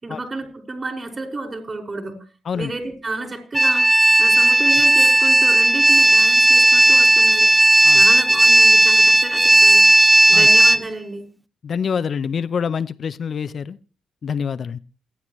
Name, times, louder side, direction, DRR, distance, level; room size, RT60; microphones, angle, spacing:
voice 1, 0.0-2.2 2.5-3.9 4.2-9.9 10.3-11.3, right 2 dB, 35° right, 5.4 m, -31 dB
sound 1, 3.5-10.8, right 1 dB, 20° right, 1.1 m, -13 dB
voice 2, 11.6-13.8 14.2-14.8, left 6 dB, 55° left, 0.6 m, -26 dB
28.5 x 9.6 x 3.1 m
hypercardioid pair, 50°, 0 cm